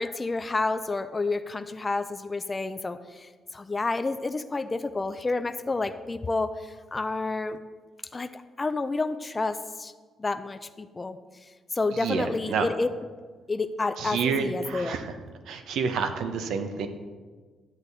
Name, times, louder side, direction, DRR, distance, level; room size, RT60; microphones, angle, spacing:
voice 1, 0.0-6.5 6.9-7.6 8.1-9.9 10.2-11.2 11.7-12.9 13.5-15.0, left 3 dB, 25° left, 9 dB, 0.5 m, -29 dB
voice 2, 11.9-12.7 14.0-15.2 15.4-16.9, right 6 dB, 80° right, 8 dB, 0.9 m, -29 dB
10.5 x 8.1 x 4.1 m, 1.5 s
cardioid pair, 90°, 0 cm